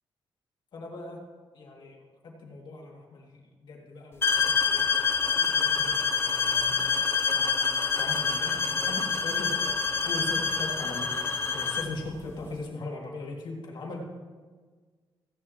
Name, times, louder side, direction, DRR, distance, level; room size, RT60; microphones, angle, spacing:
voice 1, 0.7-1.3 1.5-4.9 5.3-6.8 7.3-9.6 10.0-14.0, left 2 dB, 55° left, -1 dB, 2.3 m, -40 dB
sound 1, 4.2-12.0, left 5 dB, 25° left, 0.7 m, -26 dB
16.0 x 10.0 x 2.9 m, 1.5 s
wide cardioid pair, 170°, 9 cm